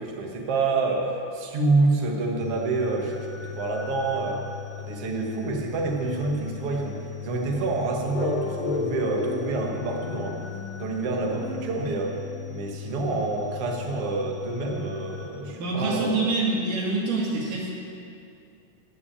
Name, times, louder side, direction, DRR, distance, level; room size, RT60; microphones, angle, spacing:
voice 1, 0.0-4.4 4.8-12.2 12.5-16.3, right 3 dB, 50° right, 0 dB, 2.2 m, -27 dB
sound 1, 2.4-15.3, left 11 dB, 30° right, 3.7 m, -39 dB
sound 2, 8.1-12.7, left 3 dB, 55° left, 2.4 m, -33 dB
voice 2, 15.6-17.7, right 3 dB, 70° right, -3 dB, 3.8 m, -26 dB
16.0 x 6.2 x 8.7 m, 2.5 s
omnidirectional pair, 3.8 m